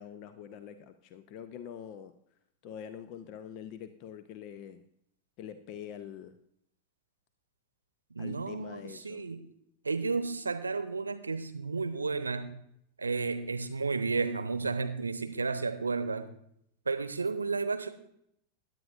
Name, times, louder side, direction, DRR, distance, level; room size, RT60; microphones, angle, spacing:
voice 1, 0.0-2.1 2.6-4.8 5.4-6.4 8.2-9.3, left 9 dB, 45° left, 11 dB, 0.6 m, -45 dB
voice 2, 8.1-9.5 9.8-12.6 13.0-16.3 16.9-17.9, right 4 dB, 75° right, 12 dB, 0.8 m, -32 dB
16.5 x 10.5 x 2.5 m, 0.73 s
figure-of-eight pair, 90°, 0 cm